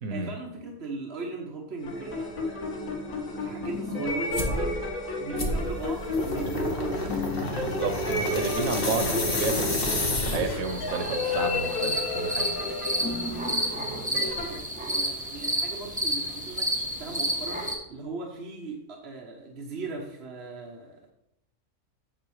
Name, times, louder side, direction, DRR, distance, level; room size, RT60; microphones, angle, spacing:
voice 1, 0.1-2.6 3.4-4.8 5.2-7.2 14.5-21.0, right 3 dB, 50° right, 0 dB, 1.3 m, -38 dB
sound 1, 1.8-14.6, left 2 dB, 80° left, 2.3 m, -32 dB
sound 2, 4.3-4.6 5.4-10.8, left 2 dB, 45° left, 1.4 m, -29 dB
voice 2, 7.6-9.9 10.2-12.4, right 4 dB, 80° right, 8 dB, 1.4 m, -31 dB
sound 3, 10.6-17.7, right 1 dB, 5° right, 1.7 m, -30 dB
7.9 x 7.2 x 4.8 m, 0.82 s
omnidirectional pair, 1.4 m